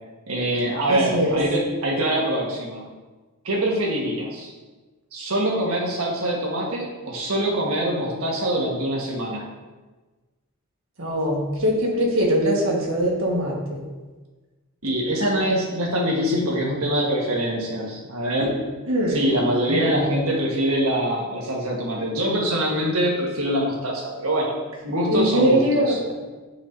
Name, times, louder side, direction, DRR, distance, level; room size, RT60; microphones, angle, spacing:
voice 1, 0.3-2.8 3.4-4.5 5.1-9.5 14.8-18.6 19.1-24.6 24.8-26.0, equal, 85° right, -2 dB, 1.5 m, -24 dB
voice 2, 0.9-1.4 11.0-13.8 18.4-18.5 18.9-19.1 19.7-20.0 25.1-26.1, equal, 65° right, -2 dB, 1.5 m, -22 dB
9.5 x 5.0 x 2.7 m, 1.3 s
head